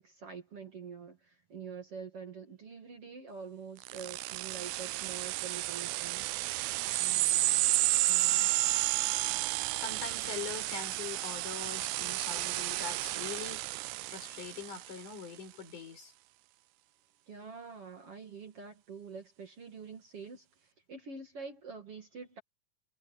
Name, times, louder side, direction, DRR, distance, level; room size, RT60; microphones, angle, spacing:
voice 1, 0.0-6.3 17.3-22.4, right 5 dB, 45° right, 2.7 m, -46 dB
sound 1, 3.8-14.9, right 19 dB, 90° right, 1.8 m, -31 dB
voice 2, 7.0-7.7 8.1-8.5 9.8-16.1, left 6 dB, 60° left, 6.5 m, -43 dB
omnidirectional pair, 4.2 m